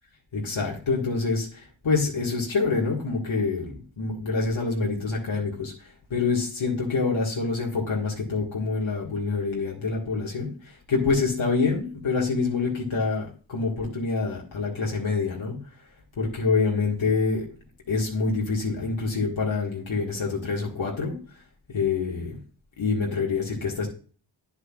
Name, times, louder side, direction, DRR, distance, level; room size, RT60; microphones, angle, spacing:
voice 1, 0.3-15.6 16.2-17.5 17.9-21.2 21.7-22.4 22.8-23.9, left 4 dB, 90° left, -3 dB, 1.9 m, -26 dB
9.5 x 7.9 x 2.4 m, 0.40 s
cardioid pair, 50°, 46 cm